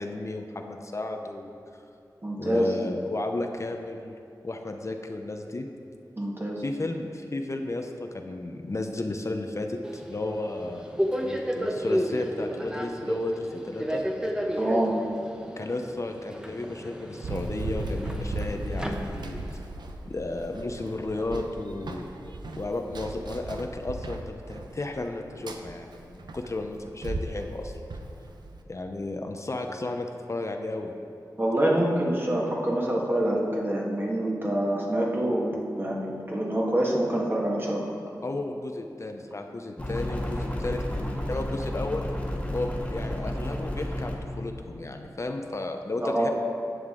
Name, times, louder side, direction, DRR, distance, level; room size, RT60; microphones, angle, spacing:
voice 1, 0.0-1.6 2.4-4.2 4.4-5.7 6.6-11.0 11.2-14.0 15.6-19.7 20.0-22.1 22.5-27.8 28.7-30.9 38.2-42.1 42.5-46.3, left 2 dB, 45° left, 4 dB, 0.7 m, -33 dB
voice 2, 2.2-2.7 6.2-6.6 14.6-15.0 31.4-35.5 35.7-37.9 46.0-46.3, right 1 dB, 30° right, -3 dB, 1.7 m, -26 dB
Subway metro underground, 9.8-19.6, equal, 10° right, 0.9 m, -32 dB
Run, 17.2-28.6, right 2 dB, 90° right, 0.6 m, -37 dB
sound 1, 39.8-44.2, left 1 dB, 20° left, 1.7 m, -31 dB
11.0 x 7.9 x 3.8 m, 2.6 s
wide cardioid pair, 65°, 7 cm